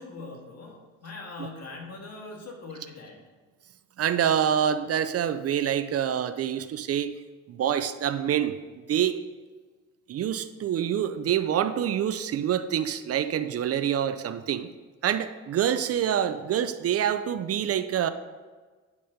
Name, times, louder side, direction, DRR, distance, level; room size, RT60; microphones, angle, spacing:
voice 1, 0.0-3.2, left 3 dB, 55° left, 0 dB, 1.8 m, -41 dB
voice 2, 4.0-7.1 7.5-8.5 8.9-9.2 10.1-14.7 15.0-18.1, right 9 dB, 55° right, 12 dB, 0.5 m, -26 dB
9.5 x 4.2 x 5.0 m, 1.4 s
cardioid pair, 90°, 30 cm